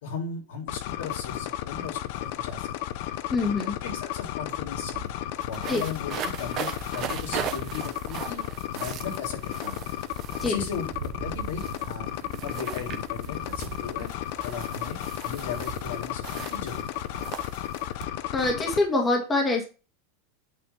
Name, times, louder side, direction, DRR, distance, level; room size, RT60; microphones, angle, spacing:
voice 1, 0.0-5.1 5.4-8.4 8.7-10.0 10.4-12.1 12.4-17.2, left 5 dB, 80° left, 0 dB, 3.0 m, -37 dB
sound 1, 0.7-18.8, left 13 dB, 60° left, 0.6 m, -33 dB
voice 2, 3.3-3.7 5.7-5.8 10.4-10.6 18.3-19.6, left 2 dB, 20° left, 1 dB, 1.8 m, -24 dB
sound 2, 4.1-4.2 4.4-18.8, right 9 dB, 40° right, 1.0 m, -39 dB
8.6 x 3.3 x 5.7 m, 0.34 s
supercardioid pair, 130°, 0 cm